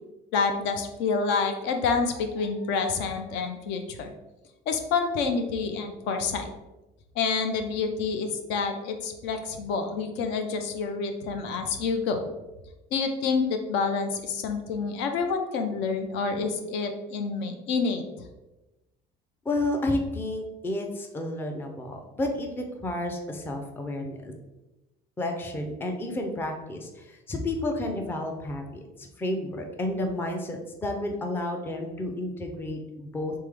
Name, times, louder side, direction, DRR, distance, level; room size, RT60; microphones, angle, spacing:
voice 1, 0.3-4.1 4.7-6.5 7.1-12.3 12.9-18.0, left 5 dB, 75° left, 6 dB, 0.6 m, -28 dB
voice 2, 19.4-24.3 25.2-33.3, left 1 dB, 10° left, 3 dB, 0.4 m, -31 dB
3.5 x 3.4 x 3.3 m, 1.0 s
cardioid pair, 150°, 19 cm